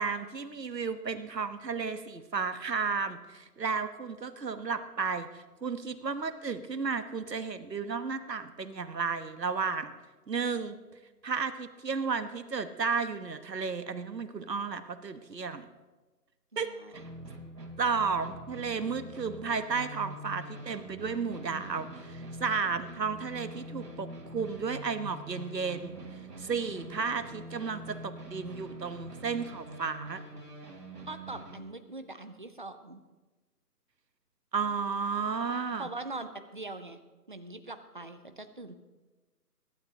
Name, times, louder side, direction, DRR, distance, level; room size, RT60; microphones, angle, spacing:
voice 1, 0.0-9.9 10.3-10.8 11.2-15.7 16.6-16.7 17.8-26.0 26.4-30.2 34.5-35.9, right 5 dB, 85° right, 11 dB, 1.2 m, -33 dB
voice 2, 16.5-17.1 31.1-33.0 35.8-37.0 37.3-38.7, right 2 dB, 30° right, 10 dB, 0.6 m, -42 dB
sound 1, 16.9-31.6, right 1 dB, 70° right, 3.5 m, -45 dB
23.0 x 12.0 x 2.8 m, 1.2 s
figure-of-eight pair, 155°, 48 cm